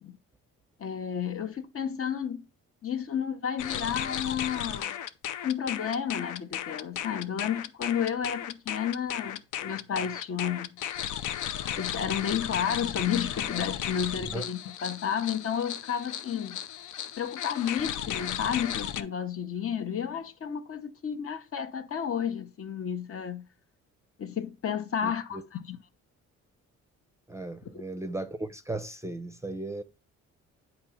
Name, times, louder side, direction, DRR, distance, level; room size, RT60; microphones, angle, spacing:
voice 1, 0.8-2.4 2.8-5.0 5.4-10.8 11.8-16.6 17.2-23.5 24.2-25.8 27.7-27.8, left 8 dB, 45° left, 0.9 m, -32 dB
sound 1, 3.6-19.0, left 10 dB, 80° left, 0.6 m, -35 dB
voice 2, 25.0-25.4 27.3-29.8, right 2 dB, 10° right, 0.6 m, -36 dB
8.7 x 2.9 x 5.7 m
cardioid pair, 90°, 30 cm